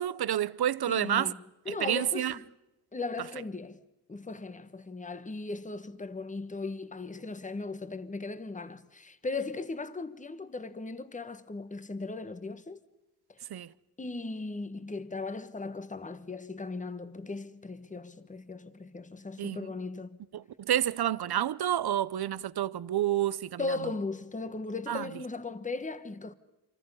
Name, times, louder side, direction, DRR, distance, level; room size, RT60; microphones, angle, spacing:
voice 1, 0.0-1.3 1.7-2.4 13.5-13.7 19.4-19.7 20.3-23.8 24.9-25.1, right 11 dB, 70° right, 0.7 m, -29 dB
voice 2, 0.9-1.4 1.7-2.4 2.9-3.8 4.1-12.8 14.0-20.2 23.6-26.3, left 3 dB, 20° left, 1.1 m, -37 dB
27.5 x 25.0 x 5.5 m
wide cardioid pair, 110°, 40 cm